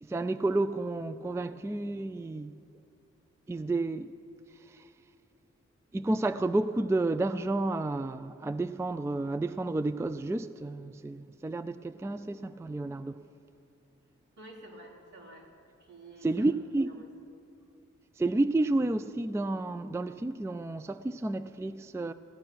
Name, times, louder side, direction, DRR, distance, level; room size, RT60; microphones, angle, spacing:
voice 1, 0.0-2.6 3.5-4.1 4.7-4.9 5.9-13.2 16.2-16.9 18.2-22.1, right 2 dB, 10° right, 0.4 m, -31 dB
voice 2, 14.4-15.5 15.8-16.5 16.8-17.1, right 1 dB, 70° right, 3.7 m, -50 dB
16.0 x 9.7 x 5.9 m
cardioid pair, 45°, 31 cm